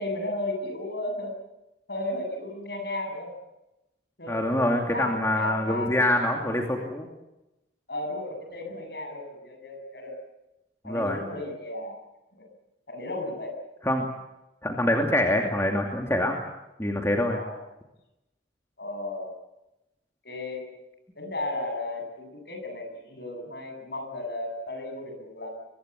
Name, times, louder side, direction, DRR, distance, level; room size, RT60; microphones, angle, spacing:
voice 1, 0.0-1.3 1.9-3.3 4.2-4.5 4.9-6.5 7.9-10.1 10.8-12.0 12.3-12.4 12.9-13.6 17.3-17.6 18.8-19.3 20.2-20.6 21.1-25.5, left 2 dB, 60° left, 4 dB, 7.8 m, -34 dB
voice 2, 4.3-7.1 10.8-11.2 13.8-14.1 14.6-16.4 16.8-17.4, left 1 dB, 15° left, 2 dB, 2.6 m, -25 dB
23.5 x 22.0 x 8.3 m, 0.94 s
head